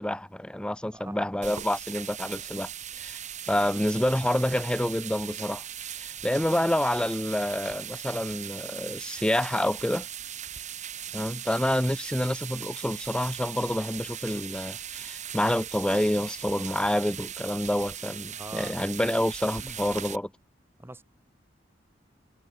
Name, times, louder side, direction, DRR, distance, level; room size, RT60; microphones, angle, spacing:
voice 1, 0.0-2.7 3.0-3.2 3.5-5.6 5.9-10.1 11.1-20.3, left 1 dB, 5° left, 0.5 m, -28 dB
voice 2, 0.9-1.3 15.0-15.1 18.4-18.8 19.6-19.8 20.8-21.0, right 2 dB, 15° right, 1.2 m, -43 dB
sound 1, 1.4-20.2, right 10 dB, 40° right, 1.5 m, -39 dB
head